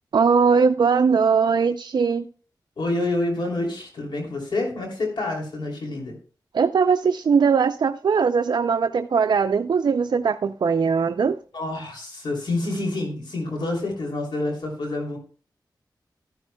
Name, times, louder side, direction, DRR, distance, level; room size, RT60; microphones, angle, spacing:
voice 1, 0.1-2.2 6.5-11.4, right 5 dB, 70° right, 0.4 m, -20 dB
voice 2, 2.8-6.1 11.5-15.2, left 2 dB, 85° left, 2.9 m, -27 dB
12.5 x 10.5 x 2.2 m
wide cardioid pair, 80°, 8 cm